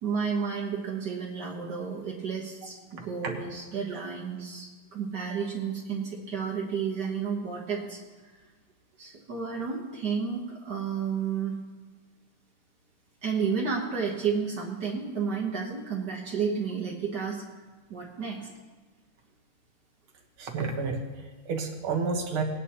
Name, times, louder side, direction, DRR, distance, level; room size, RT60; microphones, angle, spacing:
voice 1, 0.0-8.0 9.0-11.5 13.2-17.4 17.9-18.5, right 6 dB, 55° right, -2 dB, 1.7 m, -31 dB
voice 2, 20.4-22.4, right 4 dB, 80° right, 2 dB, 2.2 m, -30 dB
19.5 x 9.6 x 2.9 m, 1.3 s
omnidirectional pair, 2.3 m